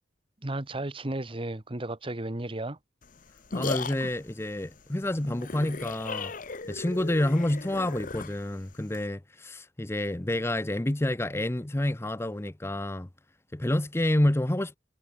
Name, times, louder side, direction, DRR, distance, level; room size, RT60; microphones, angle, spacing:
voice 1, 0.4-2.8, right 1 dB, 30° right, 1.3 m, -34 dB
sound 1, 3.0-9.1, left 4 dB, 50° left, 1.1 m, -37 dB
voice 2, 3.5-6.3 6.7-13.1 13.5-14.8, left 1 dB, 15° left, 0.6 m, -28 dB
head